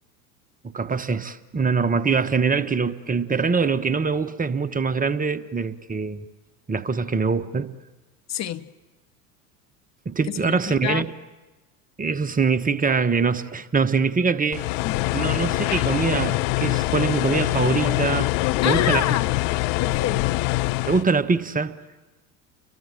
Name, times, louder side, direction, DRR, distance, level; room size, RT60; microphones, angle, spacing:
voice 1, 0.6-6.2 6.7-7.7 10.0-11.1 12.0-14.7 15.1-18.3 18.6-19.1 20.9-21.8, right 5 dB, 20° right, 1.1 m, -23 dB
voice 2, 8.3-8.7 10.3-11.0 14.8-15.0 18.6-20.4, left 11 dB, 35° left, 1.1 m, -28 dB
sound 1, 14.5-21.0, left 20 dB, 55° left, 0.8 m, -24 dB
30.0 x 23.5 x 7.7 m
hypercardioid pair, 85°, 46 cm